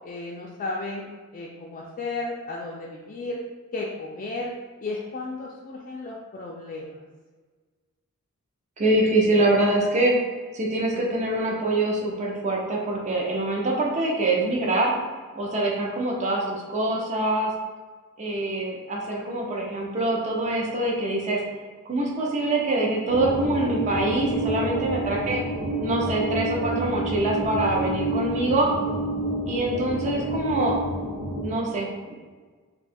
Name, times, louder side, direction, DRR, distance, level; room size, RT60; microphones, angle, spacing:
voice 1, 0.0-3.4 3.7-4.5 4.8-6.9 9.3-9.5 9.8-9.9 10.9-11.0, left 2 dB, 35° left, -3 dB, 0.3 m, -34 dB
voice 2, 8.8-10.1 10.5-14.9 15.4-17.5 18.2-21.4 21.9-25.4 25.8-28.7 29.5-30.7 31.4-32.1, right 2 dB, 30° right, -2 dB, 0.5 m, -24 dB
sound 1, 23.1-31.4, right 1 dB, 75° right, 0.8 m, -29 dB
2.7 x 2.3 x 4.1 m, 1.4 s
head